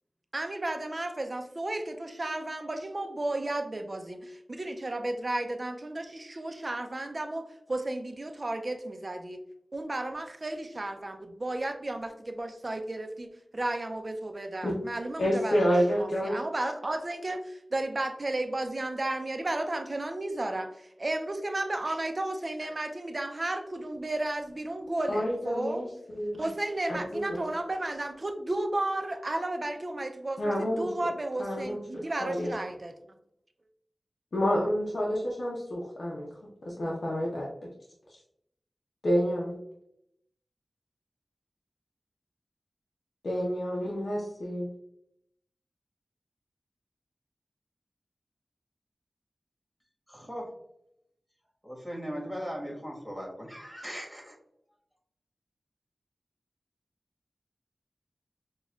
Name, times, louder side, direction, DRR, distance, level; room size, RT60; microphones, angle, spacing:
voice 1, 0.3-9.4 9.7-20.7 21.0-25.9 26.4-32.9, right 2 dB, 45° right, 6 dB, 0.5 m, -33 dB
voice 2, 15.2-16.4 25.1-25.9 26.1-26.4 26.9-27.5 30.4-30.9 31.4-32.5 34.3-36.3 36.6-37.5 39.0-39.5 43.2-44.7, equal, 80° left, -4 dB, 0.6 m, -29 dB
voice 3, 50.1-50.5 51.6-54.3, equal, ahead, -2 dB, 1.4 m, -38 dB
6.1 x 2.2 x 2.3 m, 0.77 s
wide cardioid pair, 50°, 0 cm